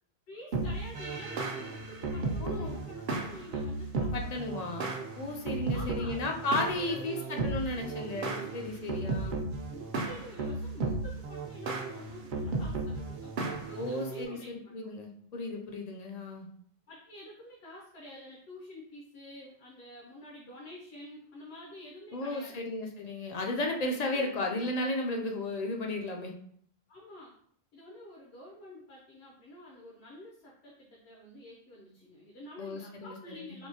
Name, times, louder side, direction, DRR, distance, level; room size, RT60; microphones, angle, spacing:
voice 1, 0.3-4.6 5.7-6.2 6.7-7.3 9.2-9.3 9.7-14.8 16.9-22.6 24.1-24.3 26.9-27.3 27.7-33.7, left 1 dB, 80° left, -4 dB, 1.0 m, -49 dB
sound 1, 0.5-14.2, right 3 dB, 55° right, 0.7 m, -35 dB
voice 2, 2.4-2.8 4.1-4.9 5.2-9.4 13.8-16.5 22.1-26.3 32.6-33.6, left 2 dB, 55° left, 2 dB, 0.5 m, -34 dB
3.6 x 2.7 x 2.7 m, 0.63 s
omnidirectional pair, 1.1 m